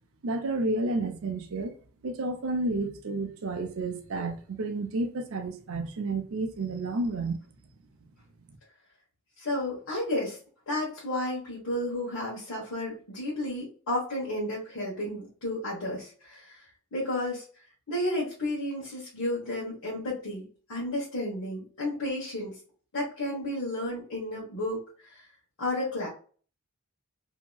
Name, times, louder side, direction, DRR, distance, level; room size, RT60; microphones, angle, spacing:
voice 1, 0.2-1.7 2.0-7.4, right 2 dB, 70° right, 0.5 m, -31 dB
voice 2, 9.4-10.4 10.7-16.6 16.9-17.4 17.9-22.6 22.9-25.3 25.6-26.1, left 1 dB, 85° left, 1.2 m, -32 dB
2.8 x 2.8 x 2.3 m
head